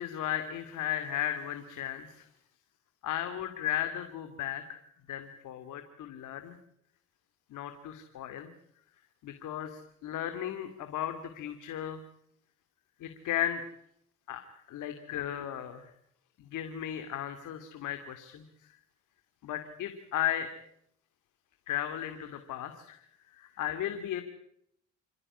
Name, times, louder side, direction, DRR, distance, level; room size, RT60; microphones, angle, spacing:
voice 1, 0.0-2.3 3.0-4.8 5.1-6.6 7.5-8.5 9.2-12.0 13.0-13.6 14.3-15.9 16.4-18.4 19.4-20.5 21.7-23.0 23.3-24.2, left 11 dB, 80° left, 8 dB, 2.6 m, -35 dB
28.5 x 15.5 x 10.0 m, 0.73 s
cardioid pair, 90°, 30 cm